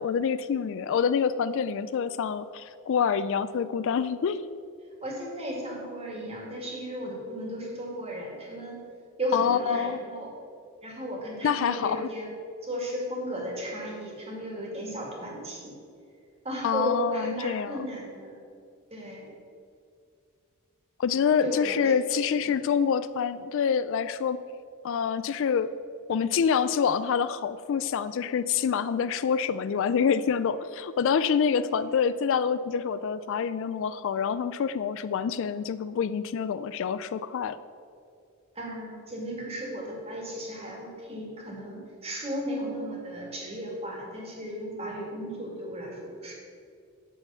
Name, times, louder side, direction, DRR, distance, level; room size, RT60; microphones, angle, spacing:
voice 1, 0.0-4.5 9.3-10.0 11.4-12.1 16.6-17.9 21.0-24.4 24.8-25.7 26.1-37.6, left 7 dB, 60° left, 13 dB, 0.3 m, -26 dB
voice 2, 5.0-8.8 9.2-10.3 10.8-12.3 12.6-15.8 16.4-18.4 18.9-19.3 21.4-21.9 22.3-22.6 38.6-46.3, equal, 25° right, -1 dB, 2.1 m, -35 dB
9.0 x 7.0 x 5.6 m, 2.4 s
head